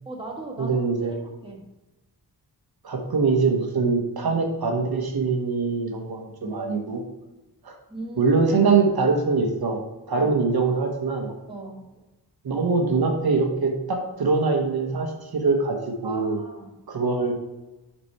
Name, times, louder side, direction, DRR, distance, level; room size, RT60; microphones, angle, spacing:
voice 1, 0.0-1.6 6.4-6.6 7.9-8.3 10.1-10.3 11.5-12.0 16.0-16.7, right 2 dB, 15° right, -1 dB, 1.3 m, -38 dB
voice 2, 0.6-1.1 2.8-7.0 7.6-7.8 8.2-9.8 10.1-11.3 12.4-15.8 16.0-16.4 16.9-17.3, right 4 dB, 65° right, 3 dB, 1.2 m, -23 dB
5.9 x 5.5 x 4.7 m, 1.0 s
wide cardioid pair, 135°, 39 cm